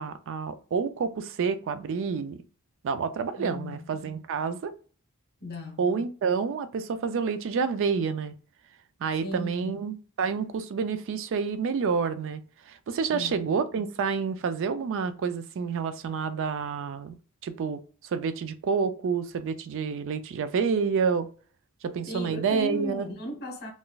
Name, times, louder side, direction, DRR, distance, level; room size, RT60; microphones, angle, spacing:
voice 1, 0.0-2.4 2.8-4.7 5.8-8.3 9.0-17.1 17.4-21.3 21.8-23.1, right 5 dB, 60° right, 0.4 m, -29 dB
voice 2, 3.4-3.8 5.4-5.9 9.2-9.7 13.1-13.5 22.1-23.7, left 1 dB, 45° left, 0.9 m, -36 dB
3.8 x 2.5 x 2.3 m
head